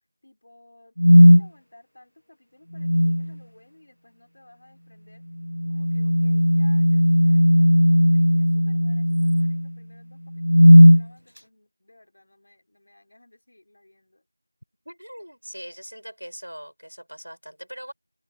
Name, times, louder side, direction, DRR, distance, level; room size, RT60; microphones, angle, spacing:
voice 1, 0.2-5.2 5.7-14.3, left 1 dB, 10° left, 5.6 m, -56 dB
sound 1, 1.0-1.4 2.8-3.3 5.5-9.7 10.4-11.0, equal, 50° left, 0.3 m, -15 dB
voice 2, 14.9-17.9, equal, 75° right, 6.0 m, -41 dB
figure-of-eight pair, 180°, 0 cm